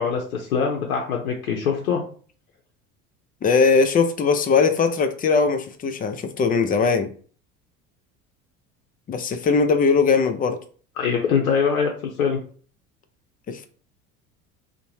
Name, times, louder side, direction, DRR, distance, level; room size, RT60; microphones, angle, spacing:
voice 1, 0.0-2.0 11.0-11.9 12.2-12.4, left 6 dB, 90° left, 0 dB, 0.6 m, -23 dB
voice 2, 3.4-7.1 9.1-10.6 13.5-13.7, left 4 dB, 20° left, 8 dB, 0.4 m, -20 dB
2.6 x 2.1 x 3.0 m, 0.43 s
hypercardioid pair, 70°, 42 cm